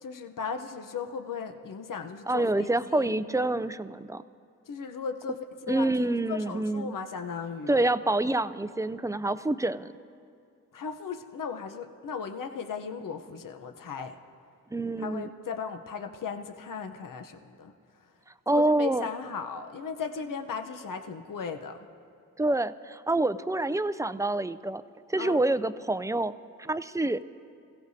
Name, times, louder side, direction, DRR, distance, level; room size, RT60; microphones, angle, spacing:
voice 1, 0.0-3.2 4.7-5.9 6.3-7.9 10.7-14.2 15.0-17.7 18.5-21.9 25.2-25.4, left 6 dB, 70° left, 6 dB, 0.9 m, -36 dB
voice 2, 2.3-4.2 5.7-6.9 7.7-9.9 14.7-15.3 18.5-19.1 22.4-24.8 25.1-26.3 26.6-27.2, right 2 dB, 10° right, 14 dB, 0.4 m, -27 dB
26.0 x 16.5 x 2.8 m, 2.4 s
cardioid pair, 55°, 34 cm